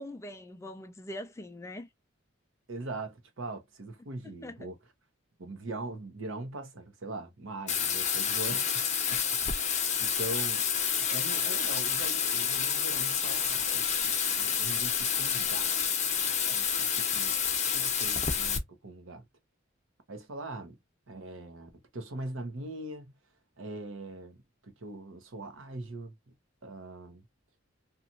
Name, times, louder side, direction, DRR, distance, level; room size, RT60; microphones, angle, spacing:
voice 1, 0.0-1.9 4.4-4.7, left 1 dB, 15° left, 0.3 m, -42 dB
voice 2, 2.7-4.7 5.4-9.7 10.0-10.6 11.1-16.0 16.4-17.4 17.7-19.2 20.1-20.8 21.1-23.1 23.6-24.4 24.6-26.1 26.6-27.2, right 2 dB, 80° right, 0.9 m, -41 dB
Bathtub (filling or washing), 7.7-18.6, left 7 dB, 35° left, 0.7 m, -29 dB
2.9 x 2.4 x 2.5 m
head